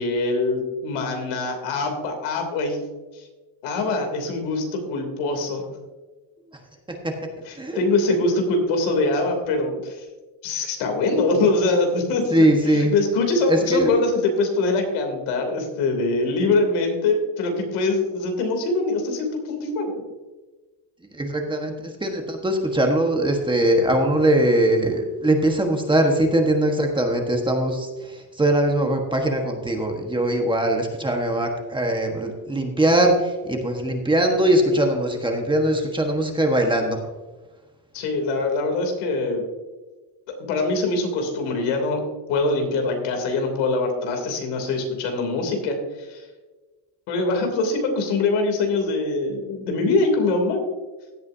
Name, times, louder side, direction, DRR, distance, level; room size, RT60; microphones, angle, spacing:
voice 1, 0.0-2.8 3.1-3.3 3.6-5.6 7.5-10.0 10.4-12.5 12.7-20.0 37.9-39.4 40.5-42.0 42.3-46.3 47.1-50.6, left 3 dB, 90° left, 3 dB, 3.1 m, -23 dB
voice 2, 12.3-12.9 13.5-13.9 21.1-37.0, right 1 dB, 10° right, 2 dB, 1.3 m, -21 dB
16.0 x 8.5 x 2.7 m, 1.2 s
cardioid pair, 140°, 47 cm